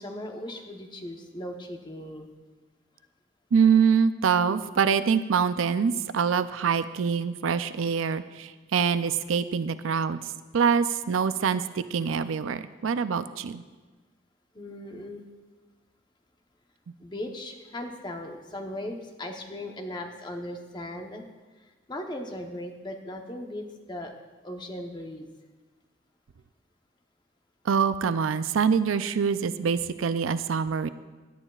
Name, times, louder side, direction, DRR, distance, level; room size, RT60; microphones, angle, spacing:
voice 1, 0.0-2.3 14.5-15.3 17.0-21.2 21.6-24.1 24.4-25.3, left 1 dB, 25° left, 3 dB, 0.9 m, -38 dB
voice 2, 3.5-10.2 10.5-13.6 27.7-30.9, right 6 dB, 90° right, 13 dB, 0.5 m, -25 dB
17.0 x 11.0 x 2.4 m, 1.3 s
head